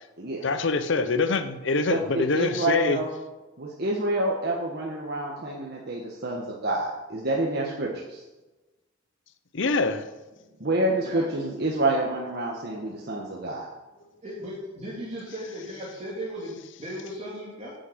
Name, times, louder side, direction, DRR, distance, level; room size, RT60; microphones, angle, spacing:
voice 1, 0.4-3.0 9.5-10.1 13.1-13.2, left 3 dB, 65° left, 11 dB, 0.7 m, -25 dB
voice 2, 1.9-3.1 3.6-8.2 10.6-13.7, right 2 dB, 55° right, -3 dB, 1.5 m, -28 dB
voice 3, 14.2-17.7, equal, 35° right, -6 dB, 2.5 m, -37 dB
9.6 x 6.6 x 8.0 m, 1.1 s
head